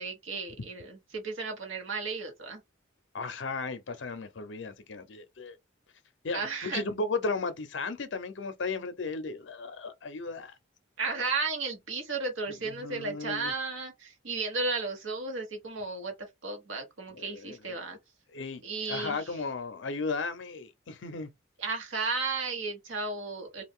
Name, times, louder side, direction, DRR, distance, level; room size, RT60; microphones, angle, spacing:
voice 1, 0.0-2.6 6.3-6.8 11.0-16.1 16.4-18.0 18.6-19.3 21.6-23.6, right 4 dB, 85° right, 1.2 m, -34 dB
voice 2, 3.1-5.6 6.2-10.5 12.6-13.5 17.1-17.8 18.3-18.6 18.9-21.3, left 3 dB, 70° left, 0.5 m, -35 dB
2.5 x 2.3 x 3.5 m
head